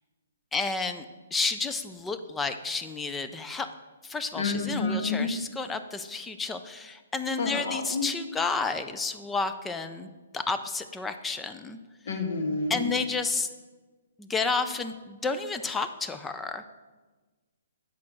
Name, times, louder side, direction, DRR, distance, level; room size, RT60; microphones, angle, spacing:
voice 1, 0.5-1.1 1.3-3.7 4.0-11.8 12.1-12.2 12.7-13.5 14.2-16.7, left 4 dB, 5° left, 9 dB, 0.4 m, -31 dB
voice 2, 4.4-5.3 7.4-8.1 12.1-12.8, left 3 dB, 50° left, 4 dB, 1.5 m, -29 dB
8.6 x 5.7 x 6.1 m, 1.3 s
hypercardioid pair, 170°, 0 cm